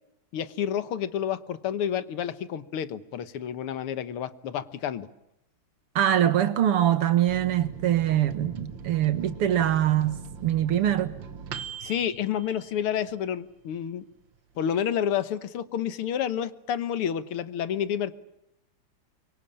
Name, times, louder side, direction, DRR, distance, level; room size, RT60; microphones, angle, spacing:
voice 1, 0.3-5.1 11.8-14.0 14.6-18.1, left 9 dB, 80° left, 2.1 m, -29 dB
voice 2, 6.0-11.2, right 11 dB, 90° right, 2.4 m, -23 dB
Microwave oven, 7.3-13.4 13.8-13.9 14.1-14.8, right 7 dB, 60° right, 1.9 m, -41 dB
25.0 x 24.0 x 8.7 m
omnidirectional pair, 2.4 m